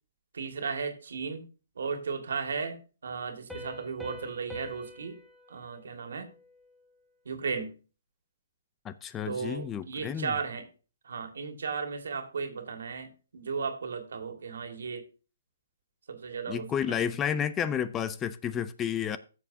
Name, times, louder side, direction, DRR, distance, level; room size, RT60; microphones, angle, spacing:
voice 1, 0.3-1.5 1.8-5.2 5.5-6.3 7.3-7.8 9.3-10.7 11.0-15.1 16.1-17.0, right 5 dB, 75° right, 2.1 m, -35 dB
Piano, 3.5-6.9, left 1 dB, ahead, 1.2 m, -46 dB
voice 2, 8.8-10.3 16.5-19.2, left 8 dB, 15° left, 0.5 m, -31 dB
15.0 x 7.0 x 2.8 m
hypercardioid pair, 150°, 0 cm